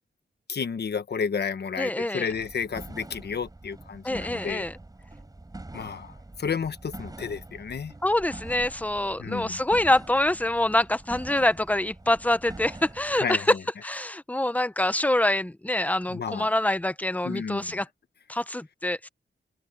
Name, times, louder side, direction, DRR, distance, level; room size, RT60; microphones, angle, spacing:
voice 1, 0.5-4.6 5.7-6.1 6.4-7.9 9.2-9.6 13.2-13.4 16.1-16.5 17.2-17.8, left 6 dB, 60° left, 1.2 m, -31 dB
voice 2, 1.8-2.3 4.0-4.8 8.0-13.6 13.8-17.9 18.3-19.1, left 1 dB, 10° left, 0.7 m, -25 dB
sound 1, 2.3-13.2, right 2 dB, 20° right, 4.3 m, -44 dB
open air
wide cardioid pair, 150°, 19 cm